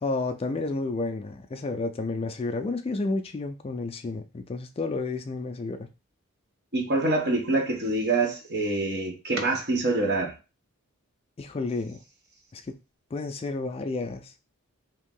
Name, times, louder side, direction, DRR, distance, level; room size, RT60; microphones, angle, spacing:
voice 1, 0.0-5.9 11.4-12.0 12.5-12.7 13.1-14.3, left 3 dB, 25° left, 0.3 m, -31 dB
voice 2, 6.7-10.3, right 2 dB, 50° right, 0.9 m, -25 dB
2.9 x 2.7 x 3.7 m
head